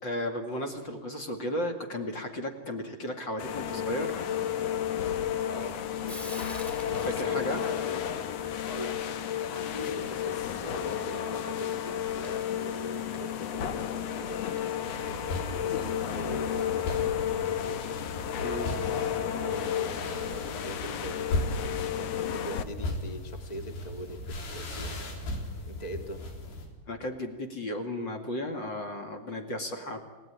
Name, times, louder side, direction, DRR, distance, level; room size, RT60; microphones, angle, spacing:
voice 1, 0.0-4.2 7.0-7.6 18.4-18.8 20.0-20.2 26.9-30.0, left 1 dB, 40° left, 4 dB, 2.1 m, -34 dB
sound 1, 3.4-22.6, left 9 dB, 70° left, 1.5 m, -32 dB
Frying (food), 4.8-21.8, right 1 dB, ahead, 1.9 m, -54 dB
voice 2, 5.5-6.4 7.0-8.3 8.7-18.6 19.3-26.3, equal, 20° left, 6 dB, 1.2 m, -42 dB
sound 2, 14.8-26.7, left 1 dB, 85° left, 5.6 m, -37 dB
29.0 x 18.5 x 10.0 m, 1.3 s
omnidirectional pair, 4.5 m